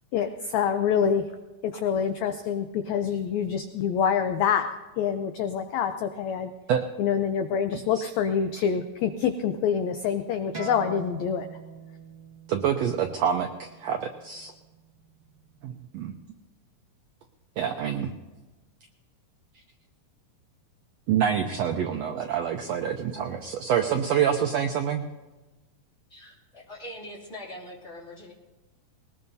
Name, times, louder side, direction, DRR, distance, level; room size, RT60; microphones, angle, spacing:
voice 1, 0.1-1.2 1.6-4.7 5.0-6.5 7.0-11.5, left 7 dB, 80° left, 7 dB, 1.6 m, -26 dB
sound 1, 10.5-15.7, right 6 dB, 40° right, 0.9 m, -43 dB
voice 2, 12.5-14.5 15.6-16.1 17.6-18.1 21.1-25.0, right 8 dB, 85° right, 4 dB, 1.5 m, -26 dB
voice 3, 26.1-28.3, left 1 dB, 20° left, -3 dB, 2.6 m, -42 dB
20.5 x 19.5 x 2.7 m, 1.2 s
omnidirectional pair, 3.9 m